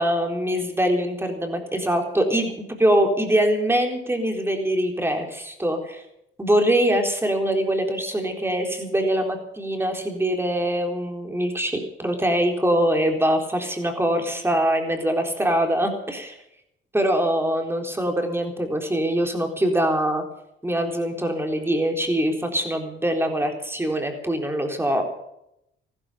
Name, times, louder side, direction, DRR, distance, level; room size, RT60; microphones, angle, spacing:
voice 1, 0.0-2.5 2.8-6.0 6.4-16.4 16.9-20.2 20.6-25.0, right 1 dB, 10° right, 4 dB, 4.0 m, -23 dB
14.5 x 13.0 x 7.3 m, 0.80 s
cardioid pair, 90°, 20 cm